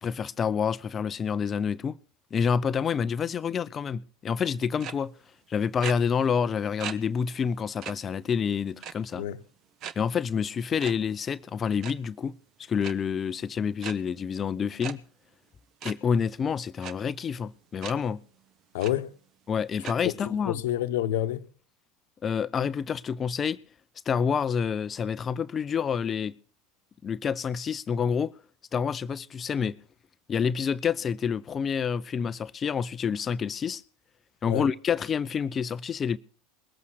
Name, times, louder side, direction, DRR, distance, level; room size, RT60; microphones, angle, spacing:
voice 1, 0.0-2.0 2.3-5.1 5.5-9.2 10.0-12.3 12.7-15.0 15.8-18.2 19.5-20.6 22.2-23.6 24.1-26.3 27.0-28.3 28.7-29.8 30.3-33.8 34.4-36.2, left 6 dB, 30° left, 0.6 m, -28 dB
sound 1, 4.8-4.9 5.8-5.9 6.8-6.9 7.3-7.4 7.8-7.9 8.8-9.1 9.8-9.9 10.8-10.9 11.7-11.9 12.8-12.9 13.8-13.9 14.8-14.9 15.8-15.9 16.8-16.9 17.8-17.9 18.4-18.5 18.8-18.9 19.8-19.9, right 9 dB, 45° right, 1.2 m, -36 dB
voice 2, 18.7-19.1 20.0-21.5 34.5-34.7, left 12 dB, 65° left, 1.1 m, -29 dB
20.5 x 8.3 x 6.5 m
hypercardioid pair, 80°, 0 cm